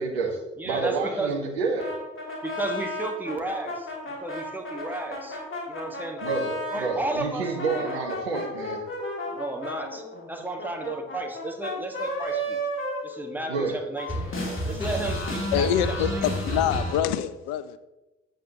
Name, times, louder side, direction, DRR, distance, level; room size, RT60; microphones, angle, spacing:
voice 1, 0.0-0.4 0.6-1.9 6.2-8.8 13.5-13.8, right 4 dB, 75° right, 1.5 m, -28 dB
voice 2, 0.6-1.4 2.4-5.4 5.7-6.2 6.7-8.0 9.3-12.6 13.0-14.3 14.7-16.2, right 2 dB, 5° right, 1.6 m, -33 dB
sound 1, 1.8-6.9 7.4-13.7 14.0-17.0, left 1 dB, 40° left, 3.1 m, -32 dB
voice 3, 15.5-17.8, left 10 dB, 60° left, 0.6 m, -25 dB
14.5 x 7.6 x 3.0 m
figure-of-eight pair, 45°, 32 cm